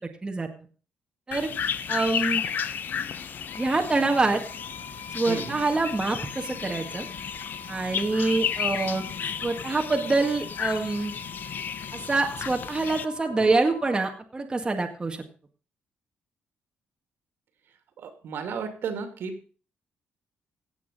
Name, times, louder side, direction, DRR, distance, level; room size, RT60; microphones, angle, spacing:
sound 1, 1.3-13.0, left 7 dB, 55° left, 0.9 m, -33 dB
voice 1, 1.9-2.4 3.6-4.4 5.1-7.1 7.7-9.0 9.4-11.1 11.9-15.2, right 3 dB, 20° right, 3 dB, 1.9 m, -25 dB
sound 2, 3.5-14.1, left 3 dB, 85° left, 3.4 m, -45 dB
voice 2, 5.3-5.6 13.4-13.5 18.0-19.4, right 6 dB, 70° right, 7 dB, 2.7 m, -34 dB
16.0 x 8.4 x 5.5 m, 0.39 s
cardioid pair, 110°, 4 cm